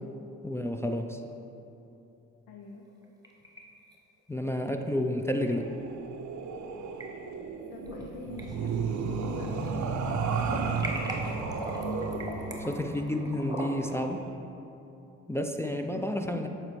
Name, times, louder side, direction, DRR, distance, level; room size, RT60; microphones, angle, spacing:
voice 1, 0.4-1.2 4.3-5.7 12.6-14.2 15.3-16.5, left 1 dB, 10° left, 4 dB, 0.3 m, -30 dB
voice 2, 2.5-2.9 7.7-10.7 15.8-16.4, left 3 dB, 85° left, 1 dB, 0.5 m, -45 dB
sound 1, 2.9-3.6 3.9-4.0 5.5-5.6 6.7-7.0 7.6-8.1 8.4-9.7 10.0-14.0, right 1 dB, 10° right, 1.0 m, -40 dB
sound 2, 5.3-14.3, right 4 dB, 60° right, 0.6 m, -34 dB
7.2 x 4.3 x 3.2 m, 2.9 s
supercardioid pair, 45°, 33 cm